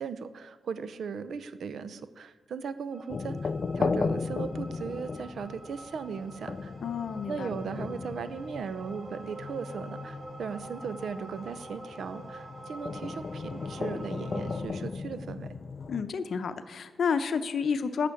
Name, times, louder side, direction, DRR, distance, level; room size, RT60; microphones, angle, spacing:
voice 1, 0.0-6.7 7.3-15.5, right 6 dB, 75° right, 13 dB, 0.7 m, -37 dB
sound 1, 2.9-14.6, right 1 dB, 40° right, 3.2 m, -47 dB
sound 2, 3.1-16.0, left 4 dB, 45° left, 0.4 m, -36 dB
voice 2, 6.8-7.5 15.9-18.1, left 6 dB, 65° left, 10 dB, 0.8 m, -30 dB
12.0 x 6.8 x 8.5 m, 1.3 s
wide cardioid pair, 120°, 0 cm